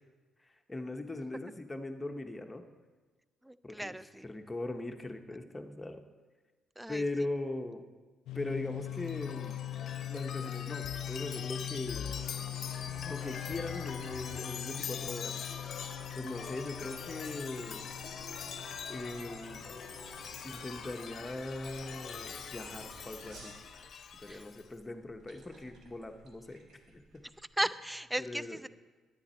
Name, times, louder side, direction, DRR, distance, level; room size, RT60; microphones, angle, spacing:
voice 1, 0.7-2.6 3.6-3.9 4.2-6.0 6.9-7.8 8.3-9.6 10.1-12.1 13.0-15.4 16.2-17.9 18.9-19.6 20.4-23.5 24.2-27.0 28.2-28.6, left 2 dB, 15° left, 5 dB, 0.9 m, -40 dB
voice 2, 3.4-4.2 6.8-7.0 24.3-24.5 27.6-28.7, right 1 dB, 5° right, 16 dB, 0.3 m, -36 dB
sound 1, 8.3-21.8, left 12 dB, 80° left, 0.3 m, -42 dB
Chime, 8.8-24.7, left 7 dB, 60° left, 0.7 m, -43 dB
sound 2, 12.1-27.4, right 2 dB, 75° right, 1.5 m, -54 dB
9.8 x 9.2 x 4.4 m, 1.3 s
cardioid pair, 90°, 0 cm